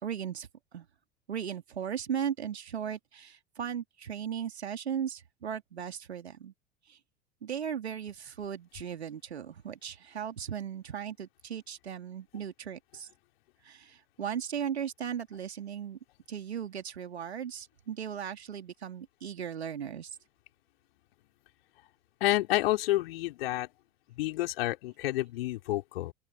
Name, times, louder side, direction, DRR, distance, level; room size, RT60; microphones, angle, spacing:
voice 1, 0.0-0.9 1.3-6.5 6.9-7.0 7.4-13.1 13.6-16.0 16.3-20.1, right 8 dB, 75° right, 3.0 m, -37 dB
voice 2, 22.2-23.7 24.2-26.1, left 16 dB, 60° left, 4.3 m, -29 dB
open air
figure-of-eight pair, 70°, 33 cm